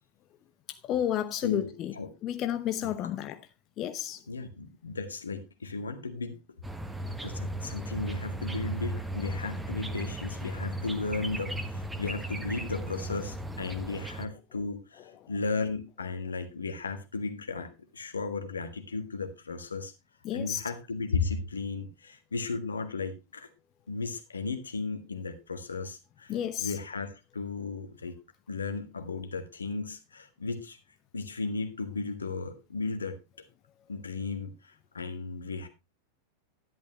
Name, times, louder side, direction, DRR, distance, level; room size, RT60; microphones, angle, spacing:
voice 1, 0.7-2.0 2.2-3.4 3.8-4.2 20.2-20.6 26.3-26.8, left 11 dB, 35° left, 0.8 m, -31 dB
voice 2, 1.4-2.1 2.8-2.9 4.3-6.4 7.2-19.9 20.3-23.5 23.9-26.3 26.6-28.1 28.5-30.8 31.1-33.2 33.9-35.7, left 4 dB, 75° left, 1.5 m, -35 dB
sound 1, 6.6-14.3, right 2 dB, 5° right, 1.3 m, -36 dB
11.0 x 10.5 x 3.0 m
figure-of-eight pair, 90°, 0 cm